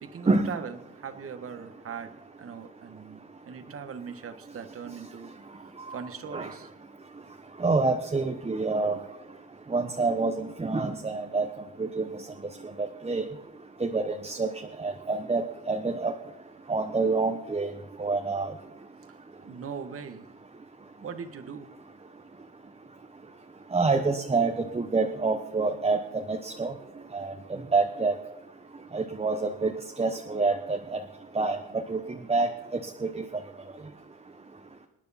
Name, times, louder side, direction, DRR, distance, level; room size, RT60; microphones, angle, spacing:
voice 1, 0.0-6.7 19.1-19.2 19.4-20.3 21.0-21.7, right 6 dB, 50° right, 9 dB, 1.4 m, -40 dB
voice 2, 7.6-9.0 9.7-11.5 11.8-12.0 12.8-13.2 13.8-14.5 14.8-16.1 16.7-17.7 18.0-18.5 23.7-26.0 26.3-26.7 27.1-27.3 27.7-28.1 28.9-29.7 30.0-31.0 31.3-32.0 32.3-32.5 33.0-33.2, right 3 dB, 20° right, 4 dB, 1.1 m, -27 dB
25.5 x 9.7 x 4.2 m, 0.97 s
cardioid pair, 90°, 30 cm